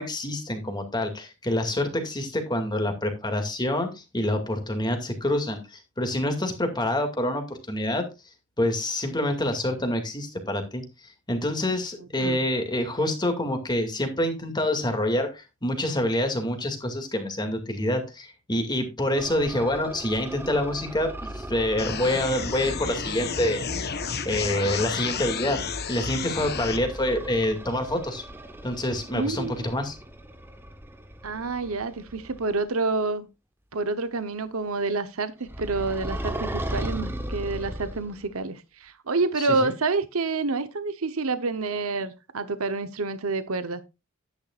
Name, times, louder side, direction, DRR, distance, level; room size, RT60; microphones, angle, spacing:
voice 1, 0.0-8.0 8.6-10.8 11.3-23.6 24.2-25.6 25.9-28.2 28.6-30.0 39.6-39.7, left 1 dB, 20° left, 2.3 m, -27 dB
sound 1, 19.2-23.2 26.3-32.7 35.5-38.3, right 1 dB, 10° right, 1.0 m, -37 dB
sound 2, 21.8-26.8, left 5 dB, 50° left, 1.1 m, -31 dB
voice 2, 29.1-29.7 31.2-33.3 33.7-43.8, right 3 dB, 75° right, 1.0 m, -28 dB
11.5 x 10.5 x 2.5 m
head